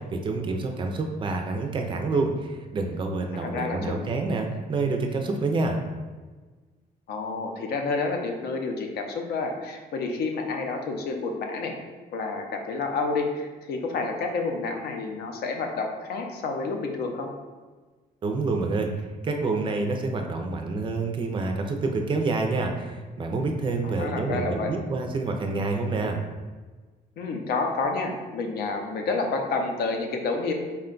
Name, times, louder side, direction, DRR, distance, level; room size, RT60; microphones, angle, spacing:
voice 1, 0.0-5.8 18.2-18.9 19.2-26.2, right 3 dB, 30° right, 3 dB, 0.3 m, -27 dB
voice 2, 3.4-4.1 7.1-11.7 12.1-17.3 23.8-24.7 27.2-30.5, left 3 dB, 80° left, 3 dB, 0.6 m, -29 dB
4.3 x 2.2 x 3.7 m, 1.3 s
cardioid pair, 170°, 17 cm